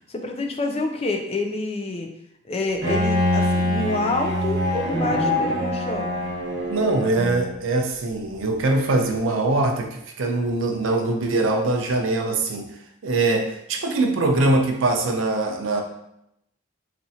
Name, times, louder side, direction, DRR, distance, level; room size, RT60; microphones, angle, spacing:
voice 1, 0.0-2.1 2.4-6.1, left 2 dB, 30° left, 3 dB, 0.4 m, -27 dB
Bowed string instrument, 2.8-7.6, left 1 dB, 60° right, 1.0 m, -24 dB
voice 2, 6.7-12.7 13.0-15.8, right 2 dB, 80° right, 3 dB, 0.5 m, -22 dB
4.2 x 2.4 x 2.7 m, 0.80 s
head